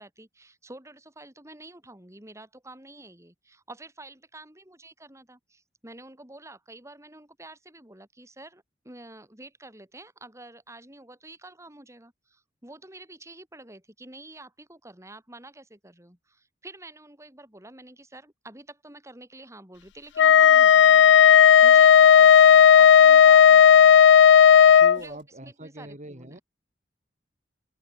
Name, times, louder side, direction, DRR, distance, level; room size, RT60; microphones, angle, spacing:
voice 1, 0.0-21.2 21.6-24.0 24.9-26.4, right 2 dB, 15° right, 7.6 m, -48 dB
Wind instrument woodwind instrument, 20.2-25.0, left 8 dB, 90° left, 0.3 m, -13 dB
voice 2, 24.8-26.4, right 1 dB, 45° right, 5.9 m, -42 dB
open air
head